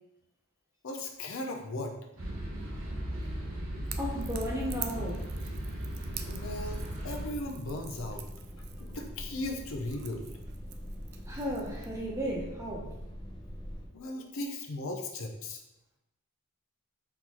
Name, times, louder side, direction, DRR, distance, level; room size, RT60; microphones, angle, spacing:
voice 1, 0.8-2.0 6.2-8.3 8.8-10.3 13.9-15.6, left 2 dB, 70° left, 3 dB, 0.6 m, -37 dB
sound 1, 2.2-7.3, equal, 75° right, 1.1 m, -36 dB
Crackle / Crack, 3.8-12.0, right 10 dB, 50° right, 0.4 m, -47 dB
voice 2, 4.0-5.2 11.3-12.9, equal, 15° right, -2 dB, 0.8 m, -34 dB
sound 2, 6.2-13.9, equal, 20° left, 0.6 m, -44 dB
4.4 x 3.8 x 2.9 m, 0.83 s
head